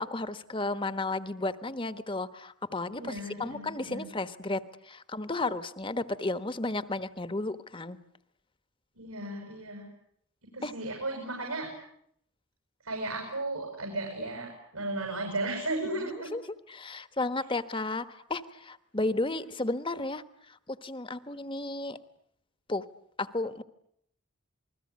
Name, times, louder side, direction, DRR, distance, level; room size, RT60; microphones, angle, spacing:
voice 1, 0.0-8.0 10.6-10.7 16.0-22.0 22.7-22.8 23.2-23.6, left 2 dB, 25° left, 12 dB, 1.2 m, -33 dB
voice 2, 2.9-4.1 9.0-9.9 10.5-11.7 12.8-14.5 14.7-16.3, right 2 dB, 90° right, 2 dB, 7.4 m, -35 dB
28.0 x 21.0 x 9.6 m, 0.72 s
head